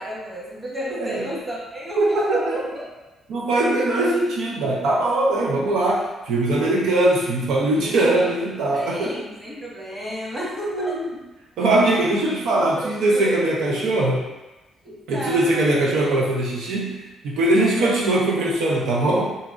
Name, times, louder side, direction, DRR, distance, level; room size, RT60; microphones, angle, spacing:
voice 1, 0.0-2.9 5.4-5.5 7.7-7.9 8.2-8.3 8.7-11.0 12.6-13.9 14.8-16.1 17.6-17.9, right 1 dB, 20° right, -5 dB, 1.2 m, -32 dB
voice 2, 2.0-2.4 3.3-9.1 10.7-11.0 11.6-14.2 15.1-16.9 17.2-19.3, right 2 dB, 85° right, -3 dB, 0.5 m, -21 dB
3.9 x 2.5 x 2.6 m, 1.1 s
cardioid pair, 90°, 0 cm